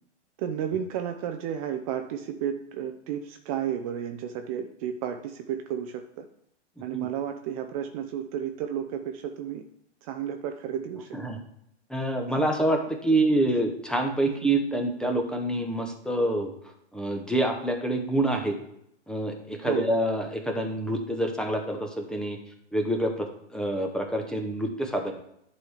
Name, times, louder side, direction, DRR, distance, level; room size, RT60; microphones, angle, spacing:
voice 1, 0.4-6.3 6.8-9.6 10.0-11.2 14.3-14.5 19.6-19.9, right 9 dB, 30° right, 6 dB, 0.5 m, -32 dB
voice 2, 11.9-16.5 16.9-18.6 19.1-22.4 22.7-25.1, right 1 dB, ahead, 3 dB, 0.8 m, -27 dB
10.5 x 4.1 x 4.8 m, 0.73 s
hypercardioid pair, 130°, 35 cm